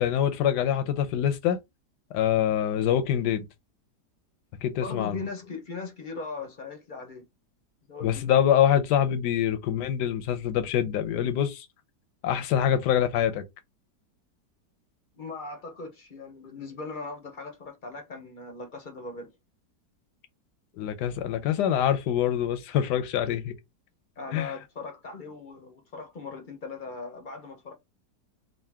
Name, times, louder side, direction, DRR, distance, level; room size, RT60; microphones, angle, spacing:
voice 1, 0.0-1.6 2.1-3.4 4.6-5.2 8.0-11.7 12.2-13.4 20.7-23.5 24.3-24.5, left 10 dB, 80° left, 1.3 m, -25 dB
voice 2, 4.8-7.2 7.9-8.5 15.1-19.3 24.2-27.7, left 4 dB, 45° left, 0.7 m, -39 dB
3.8 x 2.6 x 3.5 m
omnidirectional pair, 1.8 m